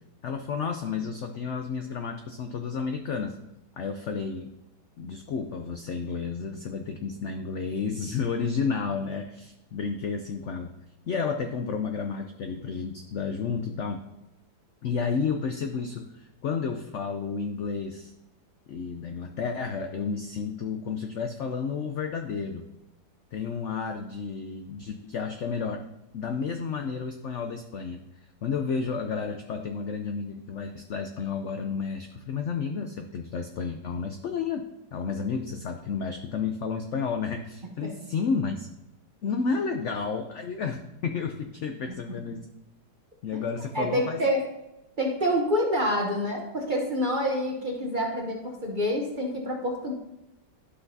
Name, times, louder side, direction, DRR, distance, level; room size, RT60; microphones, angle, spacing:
voice 1, 0.2-3.4 3.8-4.5 5.0-10.7 11.1-14.0 14.8-18.1 18.7-22.6 23.3-25.8 26.1-28.0 28.4-34.6 34.9-38.7 39.2-42.5 43.2-44.2, left 5 dB, 75° left, 6 dB, 0.6 m, -31 dB
voice 2, 43.7-44.4 45.0-49.9, equal, 35° right, 1 dB, 0.8 m, -27 dB
11.5 x 5.9 x 2.7 m, 0.93 s
omnidirectional pair, 1.9 m